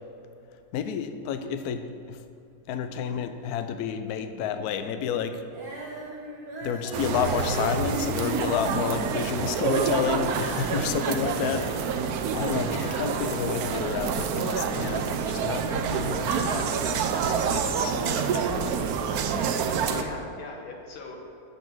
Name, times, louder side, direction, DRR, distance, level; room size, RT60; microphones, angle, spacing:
voice 1, 0.7-1.8 2.1-2.2 2.7-5.3 6.6-11.7 12.3-17.0 17.3-18.6, left 7 dB, 90° left, 9 dB, 0.8 m, -30 dB
Female singing, 5.5-11.8 12.5-12.6, right 1 dB, 45° right, 2.1 m, -41 dB
sound 1, 6.9-20.0, right 6 dB, 85° right, 0.8 m, -27 dB
voice 2, 11.3-11.9 12.8-13.1 19.8-21.2, left 2 dB, 75° left, 1 dB, 2.0 m, -40 dB
8.1 x 7.3 x 6.1 m, 2.6 s
omnidirectional pair, 2.3 m